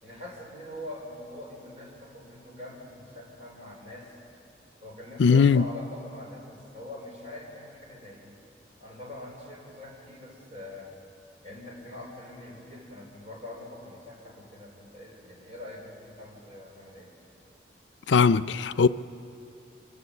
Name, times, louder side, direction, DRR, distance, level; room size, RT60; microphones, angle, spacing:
voice 1, 0.0-4.1 4.8-8.3 8.8-11.0 11.4-17.1, left 1 dB, 35° right, 4.5 m, -43 dB
voice 2, 5.2-5.6 18.1-18.9, left 5 dB, 85° left, 0.5 m, -19 dB
25.5 x 16.5 x 7.1 m
head